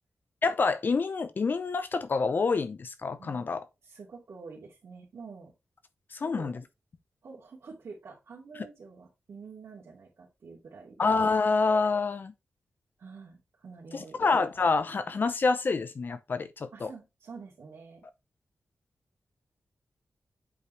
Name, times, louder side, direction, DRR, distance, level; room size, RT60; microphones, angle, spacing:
voice 1, 0.4-3.7 6.1-6.5 11.0-12.3 13.9-16.9, left 4 dB, 45° left, 0.6 m, -27 dB
voice 2, 3.8-5.5 6.2-6.5 7.2-11.0 13.0-14.3 16.7-18.1, right 4 dB, 65° right, 2.5 m, -47 dB
8.4 x 4.9 x 2.9 m
wide cardioid pair, 160°, 5 cm